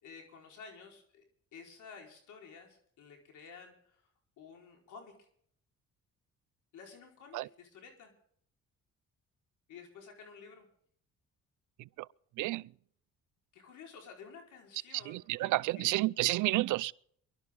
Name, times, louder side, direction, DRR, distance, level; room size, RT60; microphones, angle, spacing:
voice 1, 0.0-1.2 1.5-4.0 4.4-5.2 6.7-8.1 9.7-10.7 13.5-15.9, left 5 dB, 80° left, 4.5 m, -52 dB
voice 2, 12.4-12.7 14.9-16.9, right 19 dB, 85° right, 0.5 m, -30 dB
23.5 x 12.0 x 3.7 m
cardioid pair, 90°, 30 cm